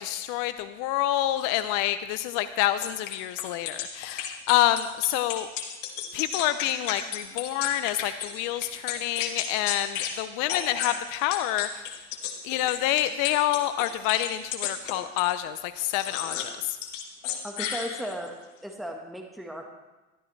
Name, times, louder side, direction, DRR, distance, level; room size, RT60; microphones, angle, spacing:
voice 1, 0.0-5.5 6.1-11.8 12.4-16.8, left 13 dB, 55° left, 12 dB, 0.6 m, -27 dB
sound 1, 2.8-8.3 8.6-10.2 10.5-15.3 15.9-16.5 16.8-18.3, left 9 dB, 80° left, 1.7 m, -33 dB
voice 2, 6.8-7.1 17.4-19.7, equal, ahead, 2 dB, 1.4 m, -37 dB
13.5 x 12.5 x 3.3 m, 1.1 s
hypercardioid pair, 95°, 37 cm